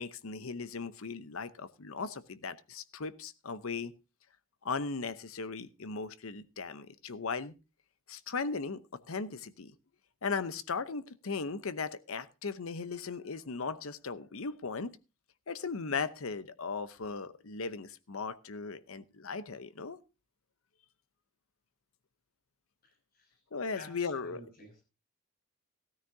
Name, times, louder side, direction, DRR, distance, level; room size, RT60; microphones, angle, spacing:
voice 1, 0.0-3.9 4.6-7.5 8.1-9.7 10.2-15.0 15.5-20.0 23.5-24.4, left 4 dB, 75° left, 14 dB, 0.8 m, -37 dB
voice 2, 22.8-23.4 23.8-23.9 24.2-24.8, left 2 dB, 45° left, 4 dB, 6.3 m, -51 dB
15.5 x 13.5 x 2.7 m, 0.28 s
head